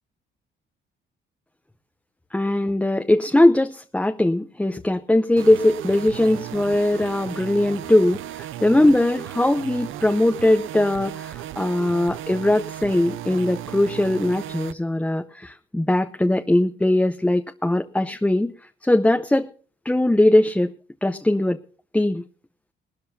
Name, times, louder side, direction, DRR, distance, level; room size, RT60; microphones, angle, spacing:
voice 1, 2.3-18.5 18.8-19.5 19.8-20.7 21.0-21.6 21.9-22.2, left 1 dB, 5° left, 7 dB, 0.7 m, -20 dB
sound 1, 5.4-14.7, right 12 dB, 80° right, 0.5 m, -35 dB
19.5 x 12.5 x 2.8 m, 0.40 s
cardioid pair, 90°, 20 cm